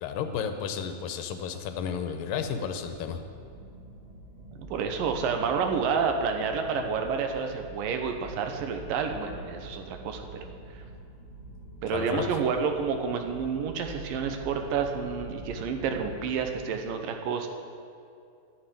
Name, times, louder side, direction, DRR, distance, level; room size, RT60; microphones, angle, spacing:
voice 1, 0.0-3.2 11.9-12.2, left 7 dB, 75° left, 7 dB, 2.3 m, -32 dB
sound 1, 2.2-16.7, equal, 25° right, 1.2 m, -50 dB
sound 2, 2.3-16.7, right 2 dB, 5° left, 2.9 m, -46 dB
voice 2, 4.7-10.8 11.8-17.5, right 6 dB, 75° right, 5 dB, 2.5 m, -29 dB
11.5 x 8.5 x 9.2 m, 2.5 s
omnidirectional pair, 4.2 m